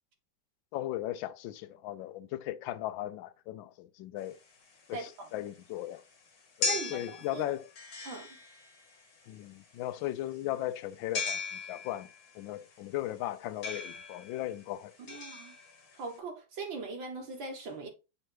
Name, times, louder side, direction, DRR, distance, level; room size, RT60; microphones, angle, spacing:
voice 1, 0.7-4.4 4.9-6.0 6.6-7.7 9.3-12.1 12.3-15.2, left 14 dB, 90° left, 1.3 m, -37 dB
sound 1, 4.2-16.2, left 4 dB, 55° left, 1.7 m, -39 dB
voice 2, 6.7-7.4 8.0-8.4 15.1-15.6 16.0-17.9, right 3 dB, 85° right, 2.2 m, -40 dB
6.5 x 3.2 x 4.5 m
omnidirectional pair, 2.0 m